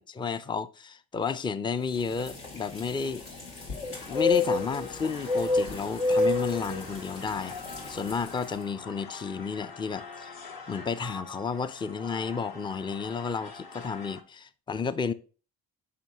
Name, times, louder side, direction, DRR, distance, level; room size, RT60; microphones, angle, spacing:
voice 1, 0.0-3.2 4.1-7.6 7.9-10.4 10.7-15.1, left 5 dB, 10° left, 0.4 m, -32 dB
sound 1, 1.9-8.5, left 3 dB, 70° left, 2.4 m, -30 dB
sound 2, 3.9-14.2, left 4 dB, 45° left, 1.1 m, -45 dB
7.0 x 5.6 x 2.9 m
hypercardioid pair, 45°, 47 cm